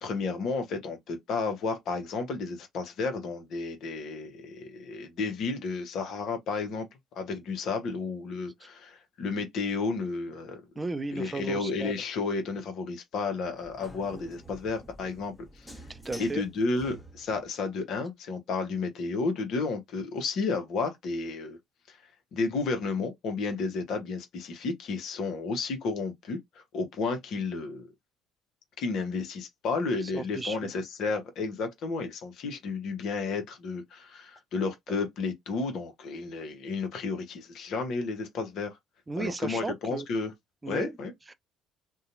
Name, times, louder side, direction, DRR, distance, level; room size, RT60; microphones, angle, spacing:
voice 1, 0.0-6.9 7.1-10.6 11.1-15.7 16.2-21.6 21.9-22.0 22.3-26.4 26.7-27.9 28.8-38.8 39.2-40.3 40.7-41.1, left 4 dB, 55° left, 0.9 m, -32 dB
voice 2, 10.8-12.0 15.9-16.4 30.0-30.7 34.9-35.0 39.1-40.1 40.6-40.9 41.3-41.4, right 3 dB, 20° right, 0.5 m, -35 dB
sound 1, 13.4-17.5, right 1 dB, ahead, 1.2 m, -48 dB
2.7 x 2.2 x 2.6 m
figure-of-eight pair, 50°, 0 cm